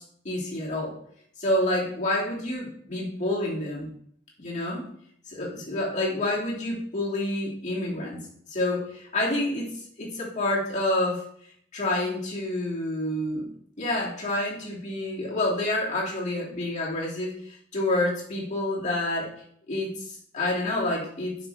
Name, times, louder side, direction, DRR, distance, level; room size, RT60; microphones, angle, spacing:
voice 1, 0.2-1.0 1.4-3.9 4.4-4.9 5.3-11.2 11.7-13.5 13.8-19.3 19.7-21.4, left 1 dB, 40° left, -5 dB, 2.7 m, -28 dB
9.0 x 6.1 x 3.5 m, 0.65 s
head